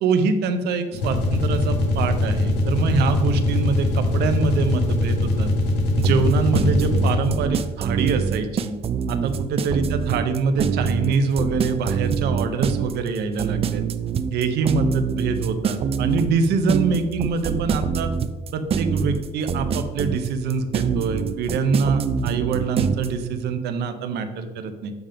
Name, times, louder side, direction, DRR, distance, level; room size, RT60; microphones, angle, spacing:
voice 1, 0.0-5.5 6.0-8.7 9.1-13.8 14.3-18.1 18.5-24.9, right 4 dB, 75° right, 8 dB, 0.8 m, -24 dB
sound 1, 0.9-7.5, left 2 dB, 85° left, 1.2 m, -22 dB
sound 2, 6.0-23.1, right 6 dB, 35° right, 0.4 m, -24 dB
8.0 x 3.6 x 5.0 m, 1.3 s
cardioid pair, 110°, 17 cm